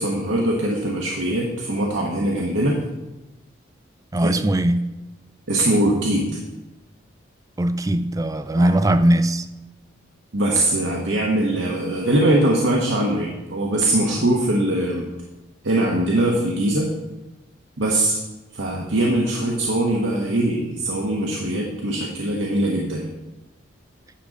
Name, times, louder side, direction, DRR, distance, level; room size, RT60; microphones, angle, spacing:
voice 1, 0.0-2.8 4.2-4.4 5.5-6.4 8.6-8.8 10.3-15.1 15.6-16.9 17.8-18.2 18.5-23.1, right 1 dB, 75° right, 1.1 m, -22 dB
voice 2, 4.1-4.9 7.6-9.5, right 1 dB, 15° right, 0.3 m, -20 dB
10.0 x 3.7 x 6.5 m
head